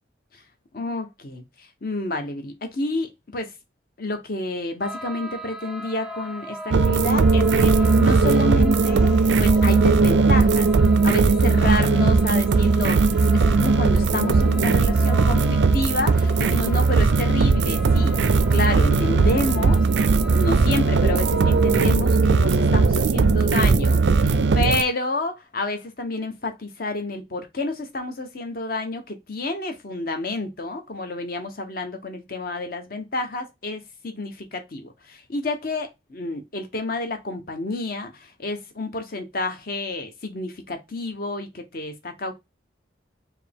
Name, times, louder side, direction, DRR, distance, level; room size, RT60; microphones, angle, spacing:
voice 1, 0.7-1.4 1.8-3.5 4.0-9.1 9.4-10.7 11.0-42.3, left 2 dB, 50° left, 0.9 m, -29 dB
sound 1, 4.8-21.8, equal, 5° right, 0.5 m, -38 dB
sound 2, 6.7-24.8, right 4 dB, 75° right, 0.4 m, -18 dB
4.6 x 2.9 x 3.5 m
head